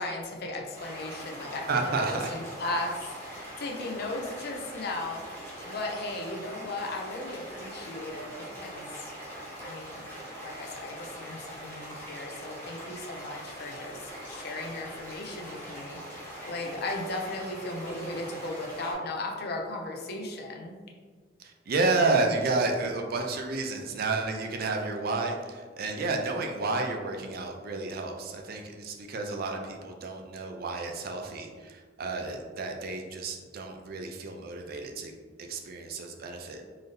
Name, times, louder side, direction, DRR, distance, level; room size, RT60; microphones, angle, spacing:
voice 1, 0.0-9.2 9.6-10.0 10.4-20.8, left 2 dB, 60° left, 1 dB, 0.6 m, -36 dB
sound 1, 0.7-18.9, equal, 10° left, 1.1 m, -42 dB
voice 2, 1.7-2.3 21.4-36.6, right 3 dB, 55° right, 3 dB, 0.4 m, -31 dB
3.9 x 2.6 x 3.3 m, 1.5 s
head